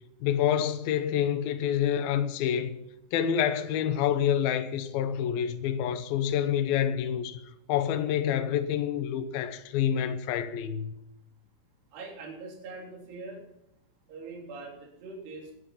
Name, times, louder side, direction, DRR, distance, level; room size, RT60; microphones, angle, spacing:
voice 1, 0.2-2.8 3.1-7.4 7.7-10.9, left 9 dB, 90° left, 2.1 m, -27 dB
voice 2, 11.9-13.4 14.1-15.5, right 3 dB, 55° right, 5.3 m, -42 dB
19.5 x 10.5 x 5.7 m
omnidirectional pair, 5.9 m